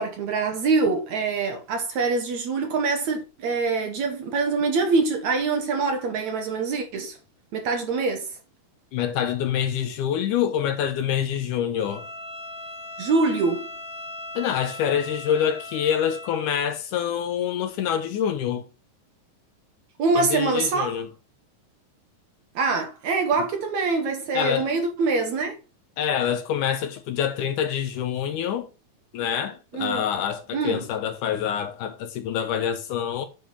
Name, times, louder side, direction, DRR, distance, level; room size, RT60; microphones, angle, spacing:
voice 1, 0.0-7.2 7.5-8.3 13.0-13.7 20.0-21.0 22.6-25.6 29.7-30.1 30.5-30.8, right 4 dB, 65° right, 2.1 m, -24 dB
voice 2, 8.9-12.1 14.4-18.7 20.2-21.1 24.3-24.7 26.0-28.7 29.1-33.3, left 9 dB, 75° left, 2.0 m, -26 dB
Bowed string instrument, 11.7-16.6, left 2 dB, 55° left, 0.9 m, -39 dB
9.3 x 3.5 x 5.8 m
omnidirectional pair, 4.2 m